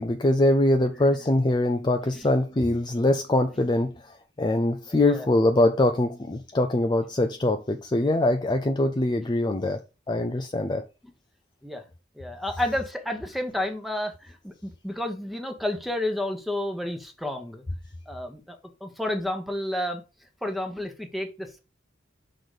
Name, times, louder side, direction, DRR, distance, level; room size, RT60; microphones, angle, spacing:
voice 1, 0.0-9.8 10.1-10.8, left 1 dB, 25° left, 0.5 m, -23 dB
voice 2, 4.9-5.3 11.6-11.8 12.1-17.6 18.1-20.0 20.4-21.6, left 1 dB, ahead, 1.1 m, -31 dB
6.1 x 3.8 x 5.0 m
head